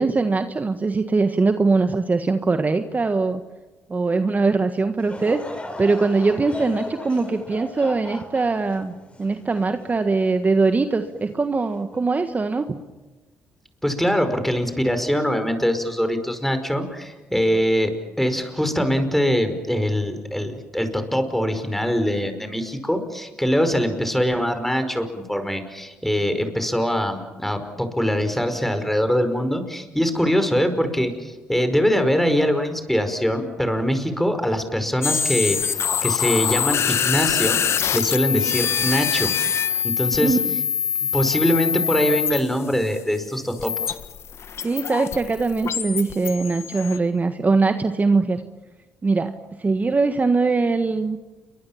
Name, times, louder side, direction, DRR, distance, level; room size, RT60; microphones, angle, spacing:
voice 1, 0.0-3.4 3.9-5.4 5.8-8.9 9.2-12.6 40.2-40.4 44.6-48.4 49.0-51.2, right 3 dB, 30° right, 8 dB, 1.6 m, -21 dB
Laughter / Crowd, 5.0-10.5 11.0-11.1 11.9-12.2, left 2 dB, 25° left, 5.5 m, -37 dB
voice 2, 13.8-17.9 18.2-37.6 37.9-39.3 39.8-40.4 41.0-44.0, equal, 5° left, 8 dB, 5.2 m, -23 dB
sound 1, 35.0-43.0 43.6-47.0, left 8 dB, 60° left, 1.5 m, -24 dB
29.0 x 23.5 x 7.3 m, 1.2 s
supercardioid pair, 55°, 5 cm